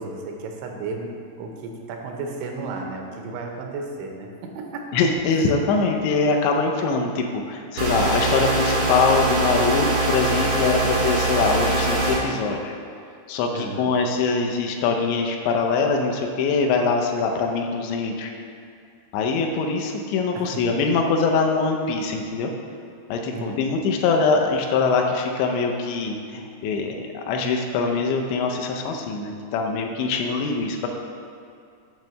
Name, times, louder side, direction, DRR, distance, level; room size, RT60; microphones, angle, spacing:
voice 1, 0.0-5.0 13.5-13.9 20.4-20.9 23.3-23.6, right 3 dB, 90° right, 2 dB, 3.2 m, -33 dB
voice 2, 4.9-12.7 13.3-18.3 19.1-22.5 23.1-30.9, left 4 dB, 80° left, 2 dB, 2.8 m, -23 dB
sound 1, 7.8-12.2, right 2 dB, 60° right, 1.0 m, -22 dB
8.9 x 3.1 x 6.5 m, 2.3 s
omnidirectional pair, 5.2 m